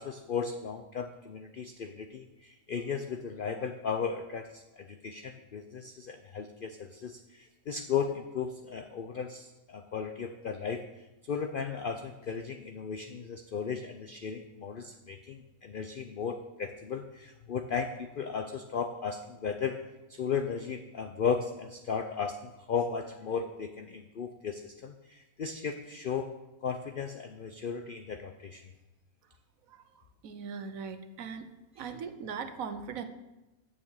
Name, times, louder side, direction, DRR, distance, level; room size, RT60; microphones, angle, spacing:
voice 1, 0.0-19.8 20.1-26.3 26.6-28.6, left 6 dB, 55° left, 7 dB, 0.6 m, -35 dB
voice 2, 29.7-31.5 31.8-33.0, right 6 dB, 70° right, 9 dB, 1.3 m, -40 dB
8.8 x 6.9 x 8.1 m, 1.0 s
omnidirectional pair, 1.5 m